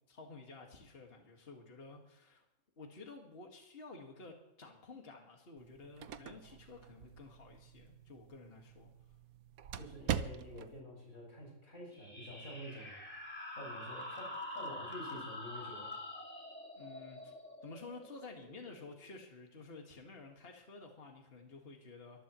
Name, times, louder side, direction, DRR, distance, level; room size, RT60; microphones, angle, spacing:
voice 1, 0.1-2.4 2.8-8.9 16.8-17.3 17.6-22.2, left 3 dB, 40° left, 1 dB, 2.1 m, -52 dB
sound 1, 5.6-10.8, right 9 dB, 80° right, 1.2 m, -43 dB
voice 2, 9.8-12.9 13.5-15.9, equal, 70° left, -3 dB, 6.1 m, -48 dB
sound 2, 11.9-19.2, left 1 dB, 5° left, 2.4 m, -46 dB
24.0 x 14.5 x 3.1 m, 0.93 s
omnidirectional pair, 1.5 m